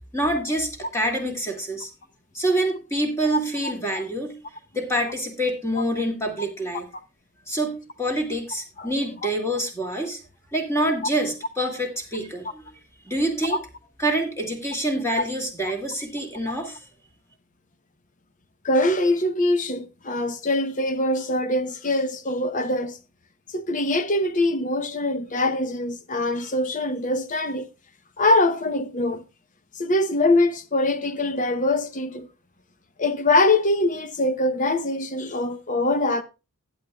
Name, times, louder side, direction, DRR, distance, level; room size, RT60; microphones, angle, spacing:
voice 1, 0.1-1.9 2.3-4.4 4.7-6.9 7.5-10.2 10.5-12.6 13.0-13.6 14.0-16.8, right 1 dB, 10° left, 2.2 m, -26 dB
voice 2, 18.6-23.0 23.5-27.7 28.2-29.2 29.8-32.3 33.0-36.2, left 2 dB, 35° left, 0.8 m, -23 dB
15.5 x 9.1 x 2.3 m
head